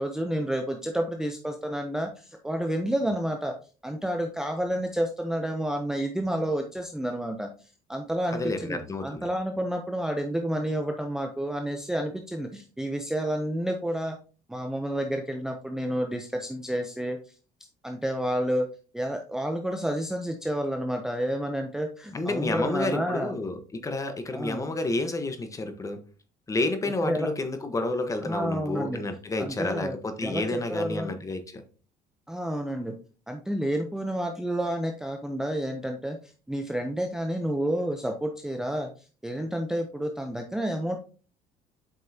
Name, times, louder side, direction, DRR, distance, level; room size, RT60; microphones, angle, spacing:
voice 1, 0.0-3.5 3.8-7.5 7.9-14.2 14.5-17.2 17.8-18.7 18.9-23.4 24.3-24.7 27.0-27.3 28.2-29.0 29.4-29.9 30.2-31.2 32.3-32.9 33.3-36.2 36.5-38.9 39.2-41.0, right 1 dB, 5° right, 4 dB, 0.6 m, -30 dB
voice 2, 8.3-9.3 22.1-23.6 23.8-26.0 26.5-31.6, left 2 dB, 20° left, 8 dB, 1.1 m, -30 dB
7.7 x 5.3 x 2.8 m, 0.37 s
cardioid pair, 135°, 16 cm